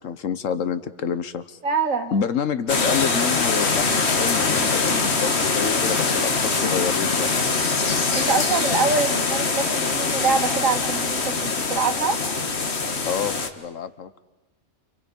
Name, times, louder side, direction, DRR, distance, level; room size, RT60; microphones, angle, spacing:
voice 1, 0.0-1.6 2.1-7.3 13.0-14.2, left 7 dB, 85° left, 12 dB, 1.4 m, -28 dB
voice 2, 1.6-2.1 8.2-12.2, right 4 dB, 85° right, 6 dB, 2.0 m, -24 dB
sound 1, 2.7-13.5, left 4 dB, 55° left, 1.7 m, -23 dB
28.5 x 28.5 x 5.4 m, 1.1 s
omnidirectional pair, 1.3 m